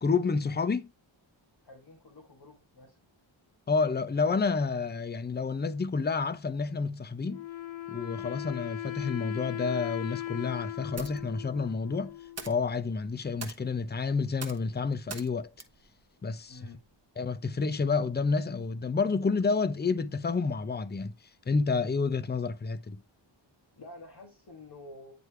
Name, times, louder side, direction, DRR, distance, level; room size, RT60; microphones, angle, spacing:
voice 1, 0.0-0.9 3.7-7.4 7.9-12.1 12.4-15.5 16.2-16.7 17.2-21.1 21.5-23.0, left 4 dB, 20° left, 0.5 m, -29 dB
voice 2, 1.6-3.0 16.5-16.8 23.7-25.1, left 2 dB, 55° left, 1.5 m, -49 dB
Wind instrument woodwind instrument, 7.3-12.8, left 13 dB, 70° left, 0.6 m, -39 dB
sound 1, 10.9-17.0, right 4 dB, 30° right, 1.0 m, -48 dB
9.4 x 3.3 x 3.2 m
wide cardioid pair, 80°, 48 cm